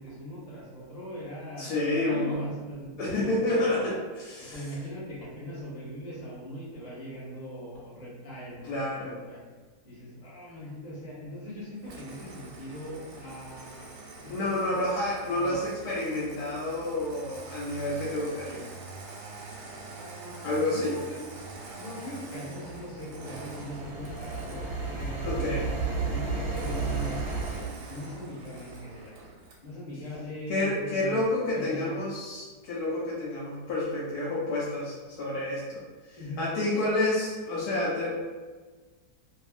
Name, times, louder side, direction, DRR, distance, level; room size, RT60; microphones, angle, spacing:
voice 1, 0.0-3.7 4.4-9.4 9.8-13.9 14.2-14.7 15.3-15.6 19.9-21.2 21.7-27.3 27.9-29.1 29.6-31.2 31.5-32.0 36.2-36.5, left 1 dB, 30° left, -7 dB, 0.8 m, -41 dB
voice 2, 1.6-2.4 3.0-4.6 8.7-9.2 14.3-18.7 20.4-21.0 25.2-25.6 30.5-38.1, left 2 dB, 70° left, -5 dB, 1.0 m, -29 dB
Engine starting, 11.8-25.2 26.5-29.7, right 3 dB, 90° right, 1.2 m, -45 dB
sound 1, 23.1-27.7, right 4 dB, 70° right, 1.0 m, -32 dB
2.6 x 2.6 x 2.4 m, 1.3 s
omnidirectional pair, 1.8 m